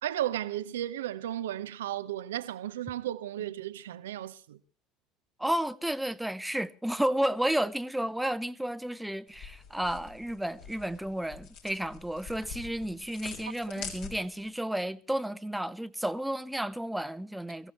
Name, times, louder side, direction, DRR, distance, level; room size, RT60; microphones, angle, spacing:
voice 1, 0.0-4.6, right 12 dB, 75° right, 0.8 m, -34 dB
voice 2, 5.4-17.7, right 1 dB, 5° right, 0.9 m, -32 dB
sound 1, 9.3-14.5, left 6 dB, 65° left, 4.4 m, -45 dB
23.0 x 15.5 x 3.1 m
figure-of-eight pair, 65°, 0 cm